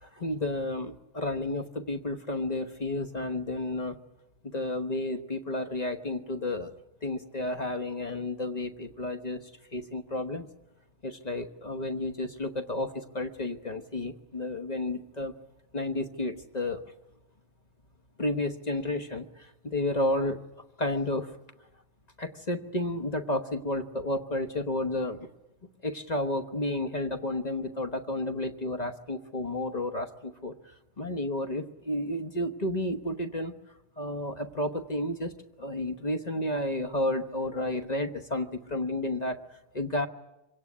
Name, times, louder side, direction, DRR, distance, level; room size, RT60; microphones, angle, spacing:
voice 1, 0.0-4.0 4.5-6.7 7.0-9.4 9.7-10.5 11.0-15.3 15.7-16.8 18.2-20.4 20.8-21.3 22.2-25.3 25.8-30.5 31.0-33.5 34.0-35.3 35.6-39.4 39.7-40.1, left 1 dB, 35° left, 7 dB, 0.6 m, -31 dB
25.5 x 17.5 x 9.4 m, 0.97 s
omnidirectional pair, 2.3 m